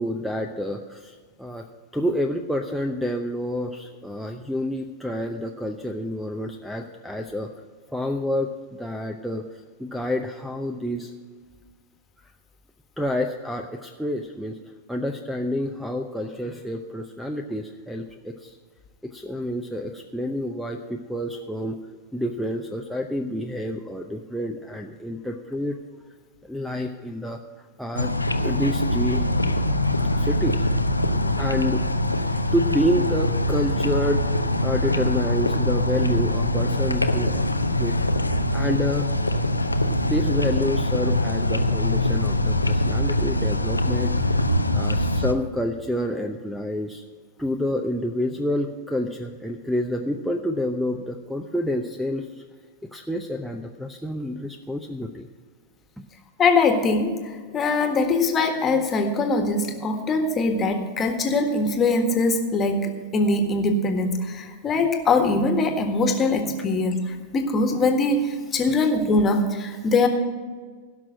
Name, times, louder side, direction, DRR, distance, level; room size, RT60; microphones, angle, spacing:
voice 1, 0.0-1.7 1.9-7.5 7.9-8.5 8.8-11.1 13.0-14.6 14.9-18.6 19.1-25.8 26.5-27.4 27.8-28.1 28.4-29.4 30.1-30.7 31.4-31.8 32.5-38.0 38.5-39.1 40.0-44.4 44.7-47.0 47.4-52.3 52.9-55.3, left 1 dB, ahead, 6 dB, 0.7 m, -28 dB
sound 1, 28.0-45.3, left 1 dB, 85° left, 0.6 m, -23 dB
voice 2, 56.4-70.1, left 3 dB, 25° left, 5 dB, 1.6 m, -22 dB
16.5 x 6.1 x 6.3 m, 1.6 s
figure-of-eight pair, 95°, 0 cm